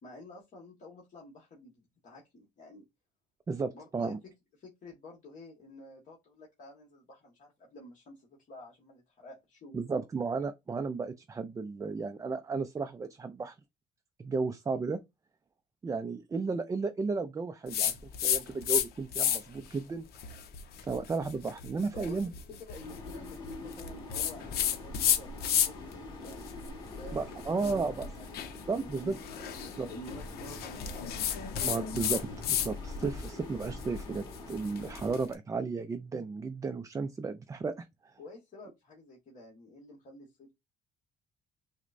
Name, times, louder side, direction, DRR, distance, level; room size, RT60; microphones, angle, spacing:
voice 1, 0.0-1.7 2.0-2.9 3.7-4.3 4.6-9.8 21.9-22.2 22.5-28.4 28.8-29.2 29.6-31.1 38.2-40.5, left 1 dB, 50° left, 1.3 m, -50 dB
voice 2, 3.5-4.2 9.7-13.5 14.2-15.0 15.8-17.9 18.2-20.1 20.8-22.3 27.1-28.1 28.7-29.2 29.8-29.9 31.6-37.9, right 4 dB, 20° right, 0.3 m, -34 dB
sound 1, 17.7-18.9 19.1-19.6 20.1-25.9 26.3-32.7 33.0-35.2, left 9 dB, 65° left, 0.7 m, -32 dB
sound 2, 22.8-35.2, left 2 dB, 25° left, 1.8 m, -44 dB
6.1 x 2.1 x 2.5 m
cardioid pair, 110°, 17 cm